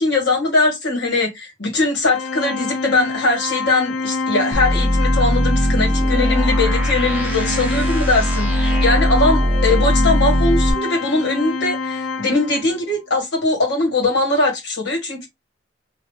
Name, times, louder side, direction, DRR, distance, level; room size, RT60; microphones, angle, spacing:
voice 1, 0.0-15.3, left 2 dB, 65° left, 1.7 m, -20 dB
Organ, 2.1-12.8, left 4 dB, 85° left, 0.4 m, -26 dB
sound 1, 4.5-10.7, equal, 10° right, 0.8 m, -19 dB
2.9 x 2.7 x 3.2 m
head